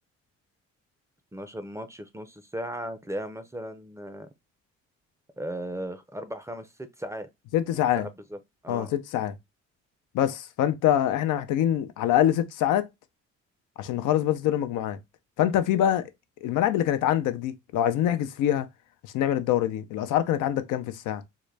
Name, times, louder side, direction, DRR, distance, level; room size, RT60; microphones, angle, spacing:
voice 1, 1.3-4.3 5.4-6.7 7.0-7.3 8.0-8.4 8.6-8.9, right 1 dB, 10° right, 0.5 m, -36 dB
voice 2, 7.5-8.1 8.7-9.3 10.1-12.9 13.8-15.0 15.4-16.1 16.4-18.7 19.1-21.2, left 11 dB, 85° left, 0.6 m, -25 dB
3.7 x 2.1 x 3.2 m
cardioid pair, 90°, 30 cm